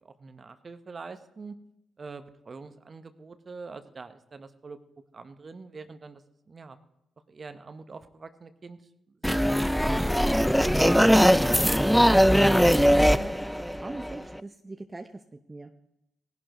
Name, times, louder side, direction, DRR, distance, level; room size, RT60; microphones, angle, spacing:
voice 1, 0.0-1.5 2.0-4.8 5.1-6.2 6.5-6.8 7.3-8.8 9.2-11.3, right 4 dB, 40° right, 10 dB, 1.1 m, -44 dB
sound 1, 9.2-14.4, equal, ahead, 0.5 m, -21 dB
voice 2, 12.3-13.3 13.8-15.2 15.5-15.7, right 2 dB, 25° right, 5 dB, 0.8 m, -40 dB
18.5 x 11.0 x 3.1 m, 0.84 s
hypercardioid pair, 45°, 0 cm